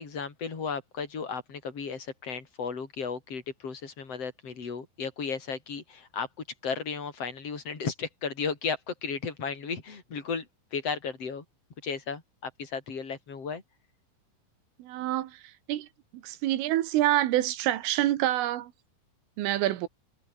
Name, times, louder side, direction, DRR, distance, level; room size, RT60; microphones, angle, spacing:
voice 1, 0.0-6.3 6.6-11.4 11.8-13.6, left 5 dB, 30° left, 5.0 m, -34 dB
voice 2, 14.8-15.3 15.7-15.9 16.2-18.7 19.4-19.9, right 14 dB, 85° right, 4.1 m, -26 dB
omnidirectional pair, 5.6 m